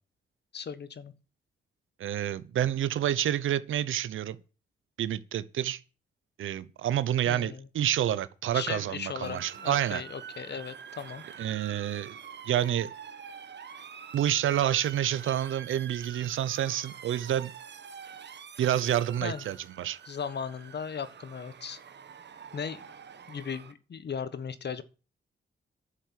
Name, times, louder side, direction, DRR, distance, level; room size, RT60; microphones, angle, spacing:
voice 1, 0.5-1.1 7.2-7.7 8.5-11.2 19.2-19.4 20.0-21.8 22.5-22.9 23.3-24.8, left 6 dB, 60° left, 1.5 m, -37 dB
voice 2, 2.0-4.4 5.0-5.8 6.4-10.0 11.4-12.2 12.5-12.9 14.1-17.5 18.6-20.0, right 11 dB, 80° right, 0.9 m, -28 dB
Motor vehicle (road) / Siren, 9.2-23.7, right 7 dB, 60° right, 1.5 m, -46 dB
11.5 x 6.7 x 9.3 m
cardioid pair, 65°, 20 cm